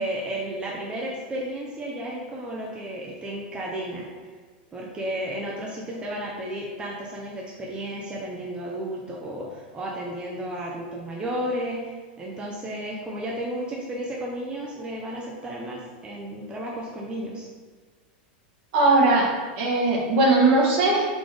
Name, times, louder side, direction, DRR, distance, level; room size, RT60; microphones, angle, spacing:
voice 1, 0.0-4.3 4.7-17.5, right 1 dB, 15° right, -4 dB, 0.6 m, -33 dB
voice 2, 18.7-19.3 19.6-21.0, right 2 dB, 60° right, -4 dB, 1.4 m, -19 dB
4.0 x 3.5 x 3.3 m, 1.5 s
supercardioid pair, 130°, 5 cm